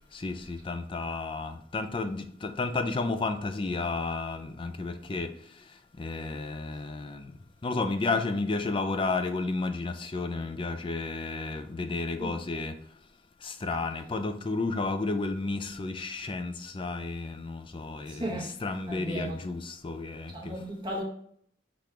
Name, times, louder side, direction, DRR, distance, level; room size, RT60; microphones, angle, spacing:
voice 1, 0.1-5.3 6.0-7.3 7.6-12.7 13.4-20.5, left 3 dB, 25° left, 0.3 m, -32 dB
voice 2, 18.1-18.5 18.9-19.4 20.3-21.0, right 1 dB, 25° right, 1.1 m, -35 dB
5.8 x 2.5 x 3.3 m
head